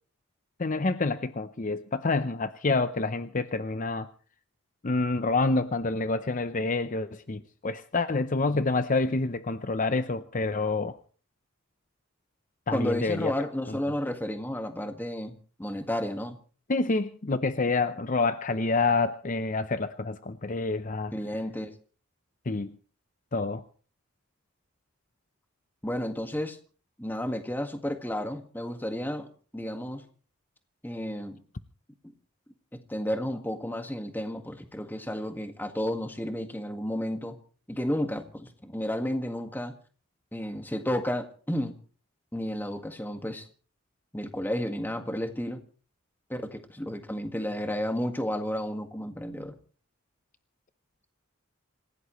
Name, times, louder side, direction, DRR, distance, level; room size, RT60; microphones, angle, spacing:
voice 1, 0.6-4.1 4.8-11.0 12.7-13.3 13.7-13.8 16.7-21.1 22.5-22.8 23.3-23.6, left 3 dB, 40° left, 11 dB, 0.7 m, -27 dB
voice 2, 12.7-16.4 21.1-21.7 25.8-26.6 27.0-30.0 30.8-31.4 32.7-37.4 37.7-39.7 40.3-41.8 42.3-43.5 44.1-45.6 46.3-49.6, left 1 dB, 10° left, 6 dB, 1.7 m, -32 dB
27.5 x 16.5 x 3.1 m, 0.40 s
head